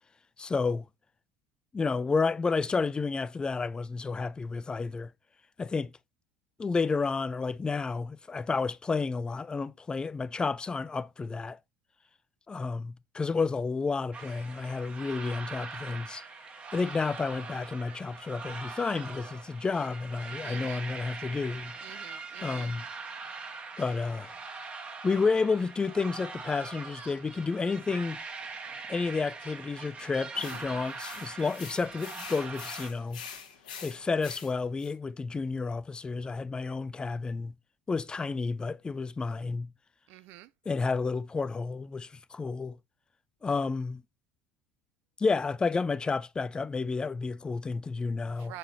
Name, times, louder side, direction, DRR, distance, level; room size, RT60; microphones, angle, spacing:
voice 1, 0.4-0.8 1.7-5.1 5.6-5.9 6.6-11.6 12.5-16.2 16.7-21.7 22.4-22.8 23.8-24.3 25.0-28.2 28.9-33.2 33.8-37.5 37.9-39.7 40.7-42.8 43.4-44.0 45.2-48.5, left 4 dB, 20° left, 0.4 m, -31 dB
sound 1, 14.1-32.9, right 4 dB, 30° right, 1.8 m, -42 dB
voice 2, 20.4-20.9 21.8-22.7 40.1-40.5 48.3-48.6, right 15 dB, 60° right, 0.4 m, -47 dB
sound 2, 30.3-34.9, left 7 dB, 75° left, 1.4 m, -45 dB
6.5 x 6.0 x 2.7 m
figure-of-eight pair, 65°, 4 cm